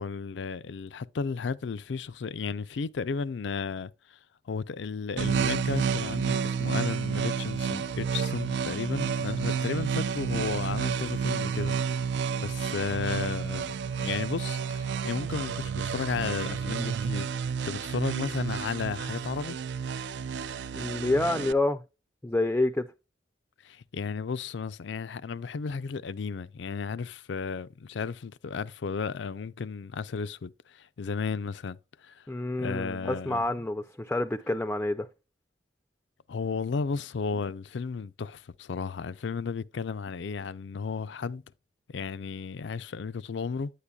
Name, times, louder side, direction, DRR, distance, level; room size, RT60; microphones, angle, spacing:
voice 1, 0.0-4.2 4.5-12.1 12.4-13.7 14.0-19.6 23.6-32.2 32.6-33.6 36.3-41.4 41.9-43.7, left 5 dB, 75° left, 0.5 m, -34 dB
sound 1, 5.2-21.5, right 6 dB, 65° right, 0.4 m, -30 dB
voice 2, 20.7-21.8 22.2-22.9 32.3-35.1, left 2 dB, 10° left, 0.4 m, -28 dB
9.7 x 8.4 x 2.3 m
head